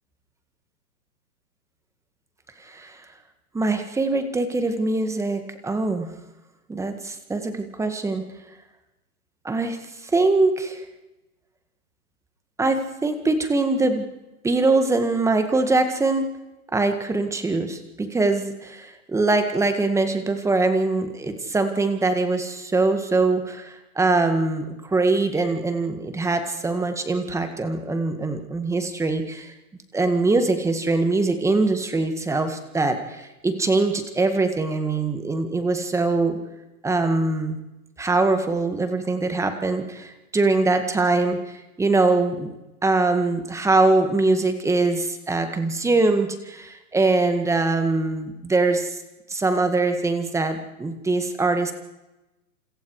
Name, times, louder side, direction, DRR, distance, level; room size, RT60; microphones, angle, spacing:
voice 1, 2.6-3.0 3.5-6.1 6.7-8.3 9.4-9.8 10.1-10.8 12.6-14.0 14.4-16.3 16.7-29.5 29.9-36.4 36.8-37.6 38.0-42.5 42.8-49.0 49.3-51.7, right 3 dB, 5° right, 8 dB, 1.9 m, -23 dB
28.0 x 27.0 x 4.9 m, 1.0 s
hypercardioid pair, 140°, 47 cm